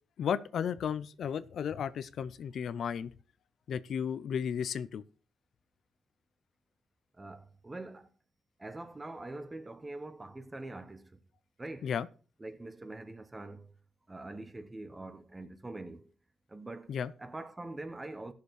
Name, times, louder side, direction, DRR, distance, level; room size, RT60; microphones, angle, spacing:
voice 1, 0.2-3.1 3.7-5.0 11.8-12.1 16.9-17.1, left 8 dB, 70° left, 0.5 m, -34 dB
voice 2, 7.2-8.1 8.6-11.0 11.6-11.9 12.4-13.7 14.1-16.1 16.5-16.9 17.2-18.3, right 2 dB, 25° right, 1.1 m, -44 dB
16.5 x 6.6 x 3.3 m
supercardioid pair, 60°, 0 cm